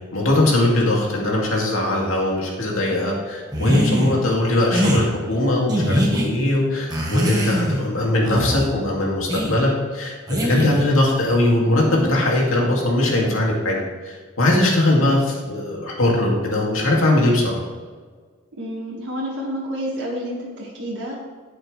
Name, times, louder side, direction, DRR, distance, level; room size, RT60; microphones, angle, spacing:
voice 1, 0.1-13.8 14.0-17.6, left 1 dB, 85° left, -2 dB, 2.5 m, -20 dB
sound 1, 3.5-4.2 4.7-5.0 5.7-6.3 6.9-7.9 8.2-8.7 9.3-9.6 10.3-10.9, equal, 20° right, 1.5 m, -22 dB
voice 2, 18.6-21.1, equal, 55° right, -6 dB, 2.0 m, -29 dB
11.0 x 8.0 x 3.4 m, 1.5 s
head